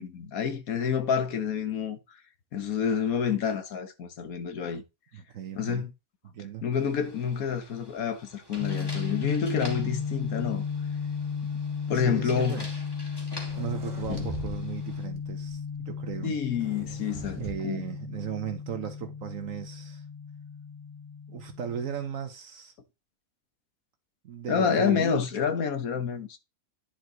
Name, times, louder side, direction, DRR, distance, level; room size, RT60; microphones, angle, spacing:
voice 1, 0.0-2.2 2.5-4.8 5.5-5.9 6.6-10.6 11.9-12.6 14.1-14.3 16.2-17.8 24.5-26.4, left 7 dB, 85° left, 1.6 m, -28 dB
voice 2, 5.1-5.9 6.2-6.6 11.9-12.7 13.6-16.4 17.4-20.0 21.3-22.7 24.2-25.2, right 8 dB, 70° right, 1.3 m, -36 dB
sound 1, 6.7-15.1, left 1 dB, 15° left, 2.4 m, -47 dB
sound 2, 8.6-22.0, left 6 dB, 35° left, 0.5 m, -35 dB
sound 3, 13.5-14.6 14.9-15.3 16.5-17.5, right 2 dB, 45° right, 1.9 m, -40 dB
10.0 x 4.6 x 3.9 m
omnidirectional pair, 1.5 m